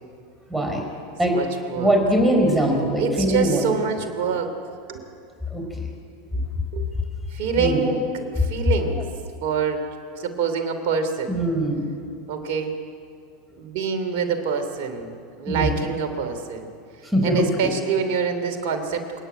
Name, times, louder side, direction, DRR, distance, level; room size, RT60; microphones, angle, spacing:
voice 1, 0.5-0.8 1.2-1.4 1.8-3.6 5.5-5.8 7.6-7.9 11.3-11.9 15.5-15.7 17.0-17.7, equal, 5° right, 1 dB, 4.3 m, -21 dB
voice 2, 1.3-1.9 3.0-4.5 4.9-5.0 6.7-6.8 7.3-9.1 9.4-9.8 10.2-11.3 12.3-12.7 13.6-15.1 15.4-16.7 17.2-19.2, right 6 dB, 60° right, 6 dB, 3.0 m, -26 dB
29.0 x 9.9 x 9.1 m, 2.4 s
hypercardioid pair, 90°, 0 cm